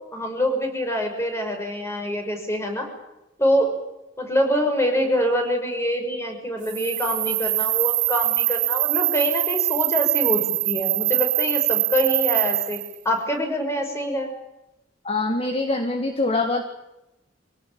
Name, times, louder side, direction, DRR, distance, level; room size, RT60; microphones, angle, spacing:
voice 1, 0.0-2.9 3.4-3.8 4.2-14.3, equal, 15° left, 4 dB, 5.9 m, -25 dB
sound 1, 6.6-12.9, right 16 dB, 75° right, 1.9 m, -23 dB
voice 2, 15.0-16.6, left 2 dB, 30° left, 6 dB, 1.9 m, -24 dB
24.5 x 18.0 x 8.7 m, 0.94 s
head